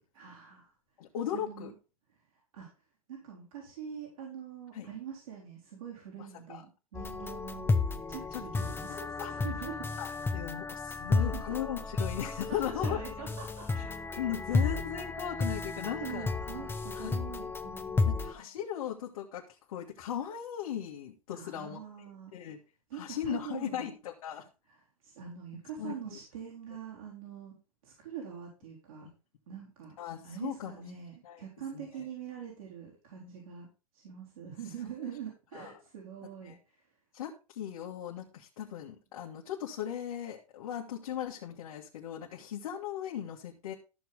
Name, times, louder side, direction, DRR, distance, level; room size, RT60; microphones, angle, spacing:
voice 1, 0.1-0.7 1.3-1.7 2.5-2.7 3.1-7.7 8.1-10.0 11.2-11.6 12.5-13.7 14.5-14.7 15.8-18.2 21.3-22.3 22.9-23.9 25.0-27.6 27.8-29.1 29.5-30.0 30.2-33.7 33.9-36.6, right 8 dB, 70° right, -4 dB, 4.3 m, -44 dB
voice 2, 1.0-1.7 4.7-4.9 6.5-6.6 8.3-9.3 10.0-13.0 13.7-13.9 14.2-16.3 17.0-17.2 18.0-21.8 22.3-22.6 22.9-24.5 25.8-26.2 29.0-29.1 30.0-30.7 31.2-31.4 31.7-32.0 35.5-35.7 36.5-36.6 37.1-43.7, left 10 dB, 65° left, -2 dB, 2.0 m, -38 dB
sound 1, 6.9-18.3, left 3 dB, 10° left, 1.0 m, -32 dB
13.5 x 6.2 x 3.6 m, 0.31 s
hypercardioid pair, 100°, 18 cm